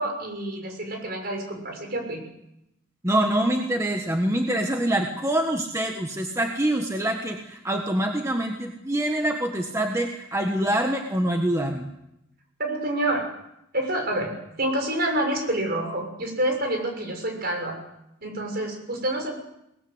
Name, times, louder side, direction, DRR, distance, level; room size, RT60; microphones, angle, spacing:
voice 1, 0.0-2.2 12.6-13.2 13.7-14.3 14.6-17.7 18.2-19.4, right 1 dB, 50° right, 3 dB, 6.5 m, -27 dB
voice 2, 3.0-11.9, right 1 dB, 15° right, 3 dB, 1.4 m, -25 dB
22.5 x 19.5 x 8.1 m, 0.85 s
head